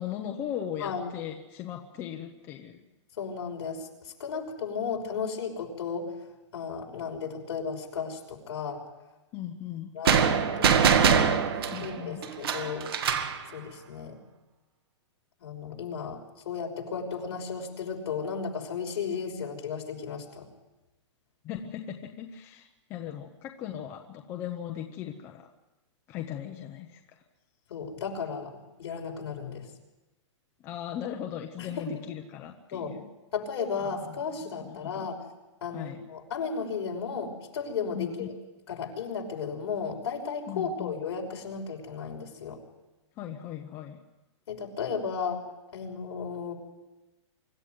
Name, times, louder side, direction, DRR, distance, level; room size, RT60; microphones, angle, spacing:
voice 1, 0.0-2.8 9.3-9.9 11.7-12.2 21.4-25.5 26.1-27.2 30.6-33.1 33.7-34.2 34.6-35.1 35.7-36.0 37.9-38.3 40.5-41.0 43.2-44.0, left 10 dB, 15° left, 3 dB, 0.9 m, -38 dB
voice 2, 0.8-1.1 3.2-6.1 6.5-8.8 9.9-11.3 11.8-12.9 13.5-14.2 15.4-20.5 27.7-29.7 31.6-31.8 32.7-32.9 33.3-35.2 35.6-38.3 38.7-42.6 44.5-45.4 45.7-46.5, left 6 dB, 55° left, 0 dB, 5.7 m, -34 dB
sound 1, 10.1-13.4, right 7 dB, 50° right, 2.0 m, -23 dB
25.0 x 14.5 x 9.5 m, 1.0 s
hypercardioid pair, 180°, 16 cm